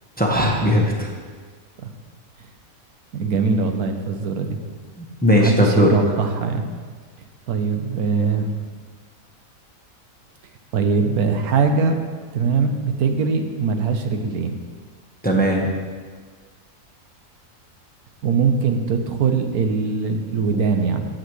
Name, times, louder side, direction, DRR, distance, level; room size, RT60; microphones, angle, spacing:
voice 1, 0.2-1.1 5.0-5.9 15.2-15.7, equal, 5° left, -1 dB, 1.0 m, -18 dB
voice 2, 3.1-4.6 5.3-6.6 7.5-8.6 10.7-12.0 12.3-14.6 18.2-21.1, right 5 dB, 85° right, 5 dB, 1.3 m, -21 dB
15.0 x 7.6 x 3.2 m, 1.5 s
omnidirectional pair, 1.5 m